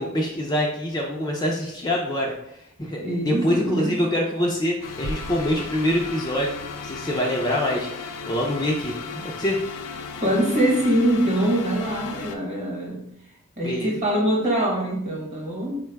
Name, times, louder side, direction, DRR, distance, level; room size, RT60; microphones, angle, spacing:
voice 1, 0.0-9.0 9.4-9.6 13.6-13.9, equal, 15° left, -2 dB, 0.4 m, -25 dB
voice 2, 3.0-4.0 9.1-9.3 10.2-13.0 13.6-15.8, right 1 dB, 30° right, -1 dB, 1.1 m, -23 dB
sound 1, 4.8-12.4, left 5 dB, 90° left, 0.5 m, -36 dB
sound 2, 5.0-8.0, right 1 dB, 90° right, 0.4 m, -39 dB
4.5 x 2.2 x 4.6 m, 0.77 s
head